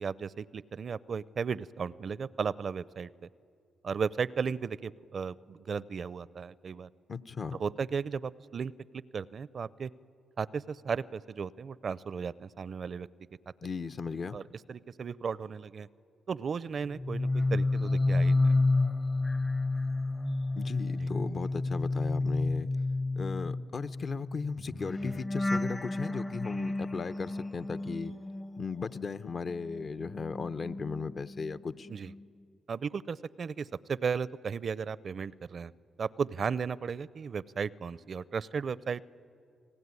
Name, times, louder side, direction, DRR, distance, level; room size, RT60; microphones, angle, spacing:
voice 1, 0.0-3.1 3.8-6.9 7.5-9.9 10.4-13.1 14.3-14.4 14.7-15.9 16.3-18.5 21.0-21.1 31.9-32.1 32.7-35.7 36.0-39.0, right 6 dB, 55° right, 19 dB, 0.6 m, -35 dB
voice 2, 7.1-7.6 13.6-14.4 20.6-22.7 23.2-28.1 28.6-31.9, left 5 dB, 50° left, 13 dB, 0.8 m, -36 dB
sound 1, 16.9-29.2 29.5-31.6 31.9-32.2, left 2 dB, 20° left, 0.7 m, -31 dB
29.0 x 20.0 x 9.7 m, 2.4 s
supercardioid pair, 60°, 0 cm